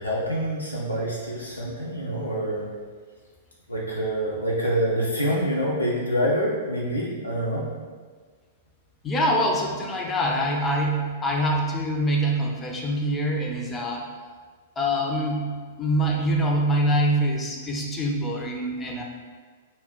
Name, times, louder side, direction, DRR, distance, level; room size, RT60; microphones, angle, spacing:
voice 1, 0.0-2.7 3.7-7.6, equal, 85° left, -5 dB, 0.4 m, -26 dB
voice 2, 9.0-14.1 14.8-19.0, equal, 20° left, 0 dB, 0.4 m, -25 dB
2.1 x 2.0 x 3.5 m, 1.5 s
figure-of-eight pair, 105°, 0 cm